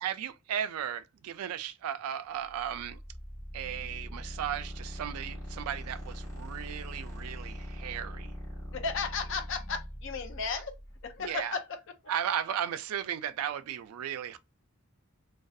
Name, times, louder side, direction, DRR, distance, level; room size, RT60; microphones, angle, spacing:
voice 1, 0.0-3.0 3.5-8.3 11.2-11.6 12.1-14.4, right 9 dB, 80° right, 0.3 m, -35 dB
sound 1, 2.4-11.3, equal, 15° left, 1.0 m, -42 dB
voice 2, 8.7-10.8 11.0-11.8, left 5 dB, 55° left, 0.5 m, -34 dB
2.6 x 2.2 x 2.3 m
head